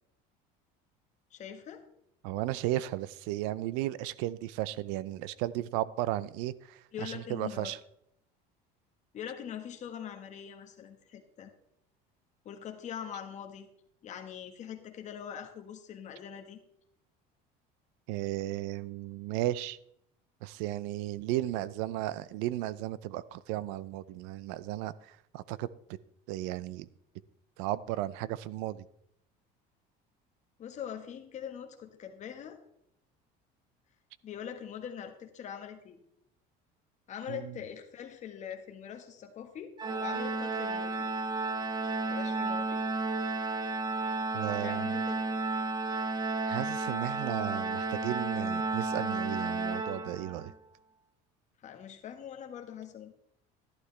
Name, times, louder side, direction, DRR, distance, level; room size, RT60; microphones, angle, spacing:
voice 1, 1.3-1.8 6.9-7.8 9.1-11.5 12.4-13.7 14.0-16.6 30.6-32.6 34.2-36.0 37.1-39.7 40.0-41.1 42.1-42.8 44.6-45.3 51.6-53.1, left 8 dB, 40° left, 1.5 m, -43 dB
voice 2, 2.2-7.8 18.1-19.8 20.4-25.7 26.3-26.9 27.6-28.8 37.3-37.5 44.3-45.0 46.5-50.5, right 15 dB, 85° right, 0.6 m, -35 dB
Organ, 39.8-50.5, right 3 dB, 25° right, 0.9 m, -32 dB
12.0 x 11.5 x 3.3 m
cardioid pair, 130°, 18 cm